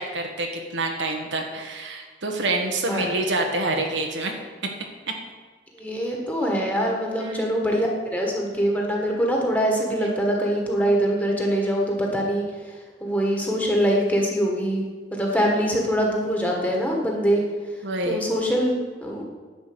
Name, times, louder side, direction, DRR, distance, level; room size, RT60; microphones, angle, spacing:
voice 1, 0.0-4.3 7.2-7.5 17.8-18.2, right 2 dB, 85° right, 2 dB, 1.5 m, -27 dB
voice 2, 5.8-12.4 13.0-14.8 15.1-17.4 18.0-19.2, equal, 10° left, -1 dB, 1.6 m, -23 dB
10.0 x 4.9 x 7.9 m, 1.5 s
head